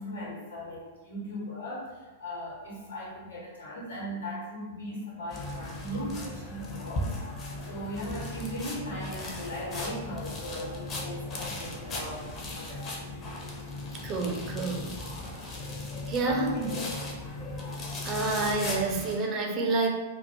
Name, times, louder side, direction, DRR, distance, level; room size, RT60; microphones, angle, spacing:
voice 1, 0.0-7.2 7.7-13.0 13.8-13.9 16.0-17.3, equal, 75° left, -5 dB, 1.0 m, -38 dB
sound 1, 5.3-19.2, left 2 dB, 30° left, 0.5 m, -37 dB
voice 2, 14.0-15.0 16.1-16.6 18.0-19.9, right 3 dB, 35° right, 2 dB, 0.4 m, -28 dB
2.2 x 2.1 x 2.8 m, 1.2 s
figure-of-eight pair, 100°, 0 cm